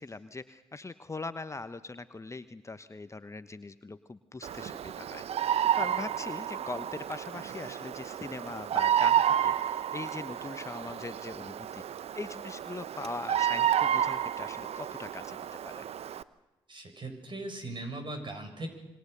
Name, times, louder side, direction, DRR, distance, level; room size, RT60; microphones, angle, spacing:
voice 1, 0.0-11.8 12.1-15.4 15.6-15.9, left 3 dB, 25° left, 11 dB, 1.1 m, -41 dB
Bird vocalization bird call bird song, 4.4-16.2, right 10 dB, 55° right, 0.9 m, -30 dB
voice 2, 16.7-18.7, right 2 dB, 40° right, 6 dB, 7.0 m, -39 dB
26.5 x 22.5 x 6.8 m, 1.0 s
hypercardioid pair, 40°, 13 cm